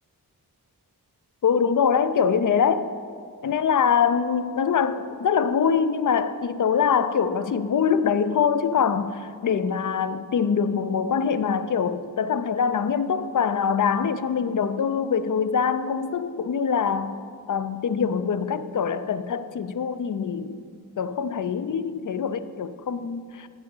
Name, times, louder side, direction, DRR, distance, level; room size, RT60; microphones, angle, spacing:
voice 1, 1.4-2.9 3.4-20.6 21.0-23.5, left 6 dB, 50° left, 0.6 m, -24 dB
15.5 x 5.1 x 3.8 m
cardioid pair, 45°, 39 cm